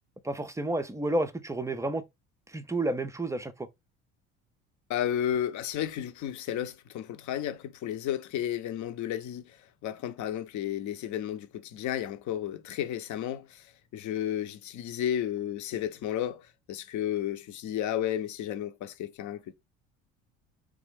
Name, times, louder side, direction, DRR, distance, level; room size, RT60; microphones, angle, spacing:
voice 1, 0.2-2.0 2.5-3.7, right 1 dB, 10° right, 0.4 m, -30 dB
voice 2, 4.9-13.6 13.9-19.5, left 11 dB, 50° left, 0.7 m, -33 dB
3.3 x 2.5 x 3.5 m
hypercardioid pair, 70°, 37 cm